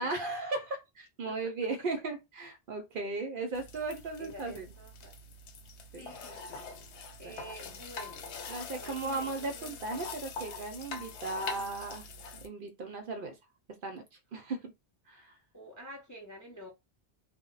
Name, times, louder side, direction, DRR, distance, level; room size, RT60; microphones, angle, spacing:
voice 1, 0.0-4.7 5.9-6.0 7.2-7.4 8.5-12.1 12.4-13.4 13.8-14.0 14.3-14.7 15.1-15.3, right 3 dB, 60° right, 0.6 m, -36 dB
sound 1, 3.5-12.5, left 4 dB, 85° left, 0.9 m, -44 dB
voice 2, 4.2-5.2 6.0-6.6 7.2-8.3 8.7-9.8 15.5-16.7, right 1 dB, 25° left, 0.4 m, -49 dB
2.1 x 2.0 x 3.8 m
omnidirectional pair, 1.1 m